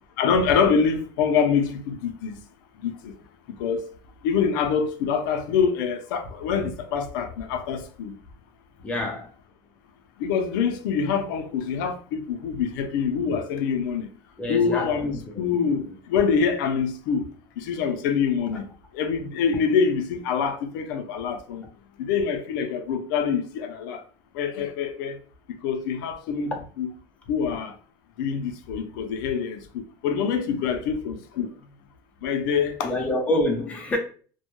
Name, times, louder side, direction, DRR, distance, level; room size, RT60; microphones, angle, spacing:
voice 1, 0.2-2.4 2.8-3.2 3.5-3.8 4.2-8.1 10.2-14.1 14.5-17.2 17.6-18.7 18.9-21.6 22.0-24.0 24.3-25.2 25.5-26.5 26.8-26.9 27.3-27.8 28.2-31.5 32.2-32.9, left 6 dB, 85° left, 0.4 m, -25 dB
voice 2, 8.8-9.3 14.4-15.5 18.5-18.6 32.8-34.0, left 1 dB, 10° left, 0.6 m, -27 dB
2.1 x 2.1 x 2.9 m
cardioid pair, 155°, 11 cm